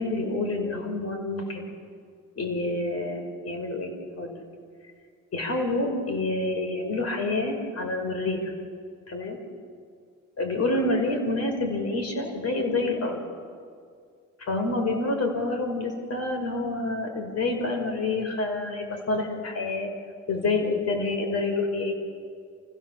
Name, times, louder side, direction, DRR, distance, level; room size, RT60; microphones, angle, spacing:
voice 1, 0.0-1.7 2.4-4.4 5.3-8.5 9.1-9.4 10.4-13.2 14.4-19.9 20.3-21.9, left 2 dB, 55° left, 3 dB, 5.3 m, -28 dB
29.0 x 16.0 x 7.4 m, 2.2 s
cardioid pair, 90°, 30 cm